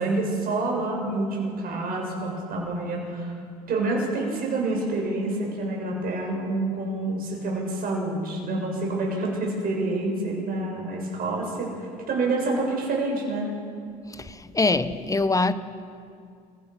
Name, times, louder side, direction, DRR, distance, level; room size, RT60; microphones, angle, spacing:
voice 1, 0.0-3.3 3.7-11.7 12.1-13.5, right 2 dB, 50° right, -1 dB, 7.2 m, -27 dB
voice 2, 14.1-15.5, left 3 dB, 15° left, 13 dB, 1.1 m, -24 dB
29.5 x 15.5 x 6.1 m, 2.3 s
hypercardioid pair, 75°, 20 cm